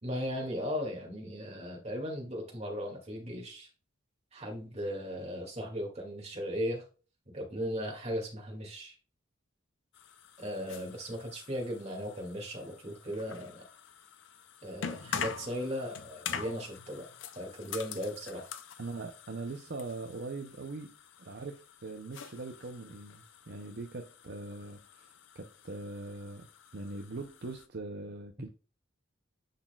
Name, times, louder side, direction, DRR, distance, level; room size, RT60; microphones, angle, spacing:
voice 1, 0.0-3.7 4.3-6.8 7.3-9.0 10.4-13.6 14.6-17.1 17.4-18.5, equal, 30° right, 0 dB, 2.3 m, -37 dB
sound 1, 9.9-27.7, left 7 dB, 65° left, 0.6 m, -45 dB
voice 2, 18.8-20.9 21.2-26.5 26.7-28.5, right 3 dB, 55° right, 4 dB, 0.6 m, -41 dB
10.0 x 4.1 x 2.4 m, 0.35 s
head